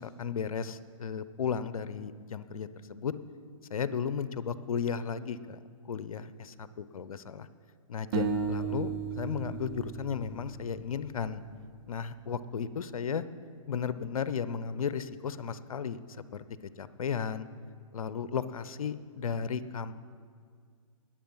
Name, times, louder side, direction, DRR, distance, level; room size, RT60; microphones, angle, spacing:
voice 1, 0.0-3.1 3.7-5.6 5.9-7.5 7.9-11.4 11.9-13.2 13.7-16.4 16.8-17.5 17.9-19.9, left 7 dB, 75° left, 14 dB, 0.7 m, -34 dB
sound 1, 8.1-11.4, right 6 dB, 45° right, 1.2 m, -35 dB
20.5 x 7.6 x 5.6 m, 2.1 s
hypercardioid pair, 135°, 18 cm